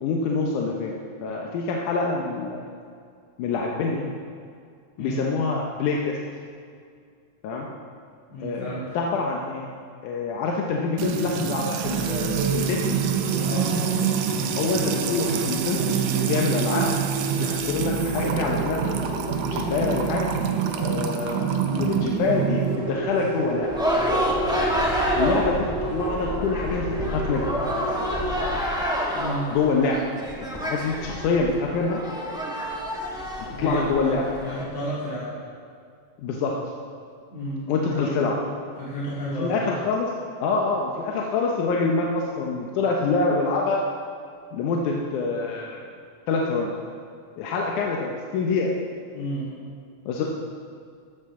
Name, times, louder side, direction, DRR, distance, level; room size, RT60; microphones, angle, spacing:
voice 1, 0.0-2.6 3.4-4.1 5.0-6.2 7.4-7.7 8.4-9.7 10.0-13.0 14.6-16.9 17.4-18.9 19.5-20.2 20.8-23.7 25.1-27.5 29.5-30.0 30.4-32.0 33.4-34.2 36.2-36.6 37.7-38.4 39.4-40.1 40.4-43.8 44.5-45.9 46.3-46.7 47.4-48.7 50.1-50.2, left 4 dB, 85° left, -1 dB, 2.4 m, -26 dB
voice 2, 8.3-8.8 13.4-13.7 29.1-29.5 33.5-34.1 34.4-35.3 37.3-38.4 38.8-39.7 49.1-49.5, equal, 55° left, -10 dB, 3.4 m, -32 dB
Music / Water tap faucet / Trickle dribble, 11.0-22.8, right 8 dB, 90° right, 2.4 m, -26 dB
sound 1, 11.8-28.5, right 2 dB, 40° right, 2.1 m, -32 dB
sound 2, 23.6-34.6, equal, 5° right, 0.3 m, -28 dB
13.5 x 13.0 x 3.7 m, 2.2 s
omnidirectional pair, 3.5 m